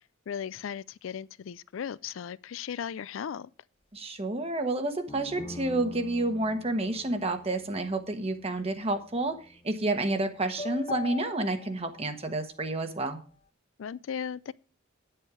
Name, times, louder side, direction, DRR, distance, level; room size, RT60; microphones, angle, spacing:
voice 1, 0.3-3.5 13.8-14.5, left 8 dB, 75° left, 0.4 m, -36 dB
voice 2, 3.9-9.3 9.6-13.2, right 2 dB, 30° right, 1.1 m, -30 dB
sound 1, 5.1-9.9 10.6-13.2, left 3 dB, 30° left, 0.7 m, -43 dB
9.7 x 7.8 x 4.8 m
head